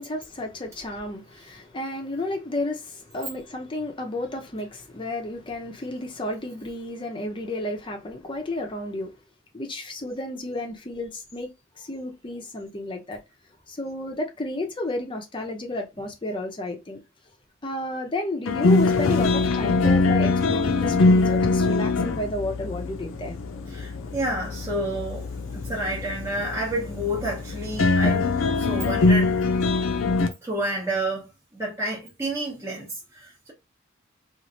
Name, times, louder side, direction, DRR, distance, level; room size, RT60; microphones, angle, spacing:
voice 1, 0.0-9.1 9.5-11.5 11.8-13.2 13.7-17.0 17.6-23.4, left 2 dB, 25° left, 0.5 m, -32 dB
sound 1, 18.5-30.3, left 3 dB, 75° left, 0.5 m, -23 dB
voice 2, 23.7-25.3 25.5-28.3 28.6-29.4 30.4-33.5, right 1 dB, 15° right, 0.7 m, -30 dB
3.1 x 2.5 x 2.6 m
head